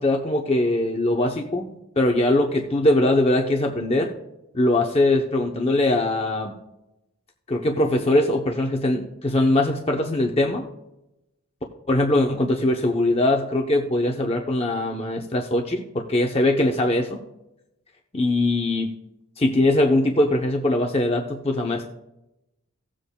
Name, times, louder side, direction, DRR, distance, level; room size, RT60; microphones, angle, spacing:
voice 1, 0.0-4.1 4.5-6.5 7.5-10.6 11.9-17.2 18.1-18.9 19.4-21.8, left 1 dB, 25° left, 1 dB, 0.7 m, -21 dB
17.5 x 7.6 x 2.2 m, 0.90 s
head